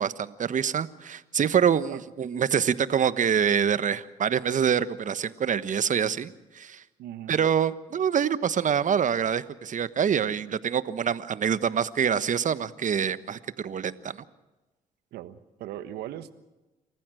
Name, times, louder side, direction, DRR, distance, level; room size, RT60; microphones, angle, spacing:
voice 1, 0.0-6.8 7.3-14.2, right 8 dB, 50° right, 14 dB, 1.2 m, -26 dB
voice 2, 7.0-7.4 15.1-16.3, right 12 dB, 75° right, 12 dB, 1.3 m, -39 dB
28.0 x 15.0 x 7.8 m, 1.1 s
supercardioid pair, 55°, 17 cm